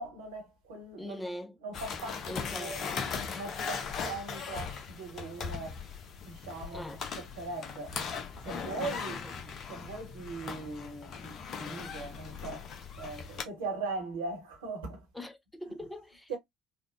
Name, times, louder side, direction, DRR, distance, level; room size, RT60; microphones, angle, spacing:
voice 1, 0.0-1.2 1.6-2.8 3.3-5.8 6.2-6.9 7.2-8.0 8.4-9.2 9.7-12.7 13.0-15.0 16.3-16.4, right 3 dB, 70° right, 1.2 m, -40 dB
voice 2, 1.0-1.6 2.3-3.1 6.7-7.0 8.8-9.3 15.1-16.4, left 1 dB, 10° left, 0.6 m, -42 dB
sound 1, 1.7-13.4, left 6 dB, 45° left, 0.7 m, -39 dB
3.5 x 2.3 x 2.5 m
figure-of-eight pair, 55°, 0 cm